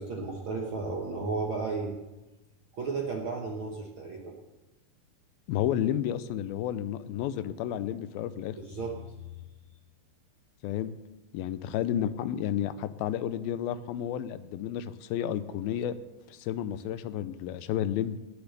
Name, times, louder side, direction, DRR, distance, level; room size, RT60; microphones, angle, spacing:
voice 1, 0.0-2.0 2.7-4.3 8.6-9.4, right 3 dB, 60° right, 0 dB, 1.4 m, -34 dB
voice 2, 5.5-8.6 10.6-11.0 11.3-16.0 16.3-18.2, left 10 dB, 85° left, 14 dB, 2.5 m, -31 dB
19.0 x 7.0 x 6.7 m, 1.0 s
omnidirectional pair, 4.3 m